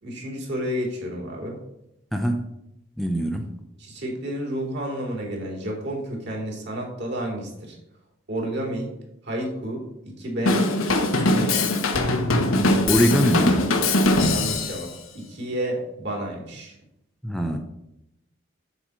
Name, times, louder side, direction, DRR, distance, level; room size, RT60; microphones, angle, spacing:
voice 1, 0.0-1.6 3.8-7.8 8.3-8.9 9.2-11.6 14.2-16.8, right 1 dB, 55° right, -1 dB, 3.1 m, -31 dB
voice 2, 2.1-2.4 3.0-3.5 12.9-13.7 17.2-17.6, equal, ahead, 3 dB, 0.6 m, -22 dB
Drum kit / Drum, 10.5-14.9, left 2 dB, 90° left, 1.2 m, -21 dB
8.1 x 4.7 x 7.4 m, 0.84 s
head